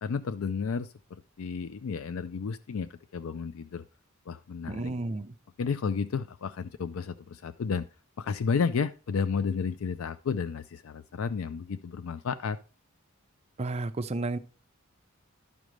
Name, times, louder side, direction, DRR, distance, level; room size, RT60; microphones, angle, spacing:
voice 1, 0.0-3.8 4.3-4.8 5.6-7.9 8.2-12.6, left 5 dB, 75° left, 0.4 m, -32 dB
voice 2, 4.7-5.3 13.6-14.4, right 2 dB, 30° right, 0.5 m, -32 dB
12.0 x 5.1 x 3.1 m
head